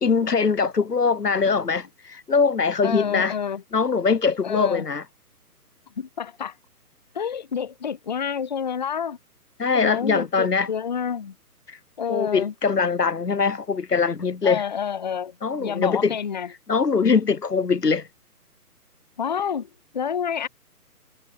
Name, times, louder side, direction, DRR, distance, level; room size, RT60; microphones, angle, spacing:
voice 1, 0.0-3.3 3.7-5.0 9.6-10.7 11.7-11.8 12.1-14.6 15.4-16.2 16.7-18.1, left 5 dB, 80° left, 1.1 m, -22 dB
voice 2, 2.8-3.6 4.4-4.9 6.0-6.5 7.1-9.2 9.7-11.3 12.0-12.5 14.4-16.5 19.2-20.5, left 7 dB, 30° left, 0.8 m, -28 dB
figure-of-eight pair, 140°, 47 cm